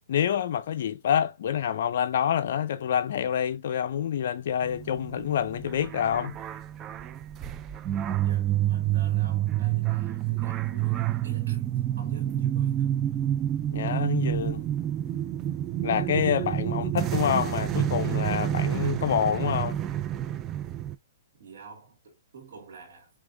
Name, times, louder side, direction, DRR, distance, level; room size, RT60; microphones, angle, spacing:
voice 1, 0.1-6.3 13.7-14.6 15.8-19.8, left 9 dB, 60° left, 0.5 m, -27 dB
sound 1, 4.6-20.9, right 12 dB, 25° right, 0.3 m, -28 dB
voice 2, 8.2-12.9 21.4-23.1, right 5 dB, 70° right, 2.2 m, -48 dB
5.2 x 3.5 x 2.6 m
hypercardioid pair, 145°, 0 cm